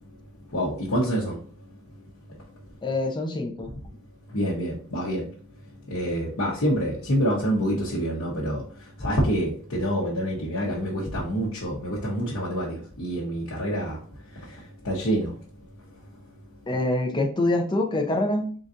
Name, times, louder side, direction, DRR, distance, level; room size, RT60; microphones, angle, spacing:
voice 1, 0.5-1.4 4.3-5.3 5.9-8.6 9.0-14.0 14.8-15.3, equal, 65° left, 1.0 m, -26 dB
voice 2, 2.8-3.7 16.7-18.5, left 2 dB, 20° left, 0.6 m, -25 dB
3.9 x 3.8 x 2.5 m
head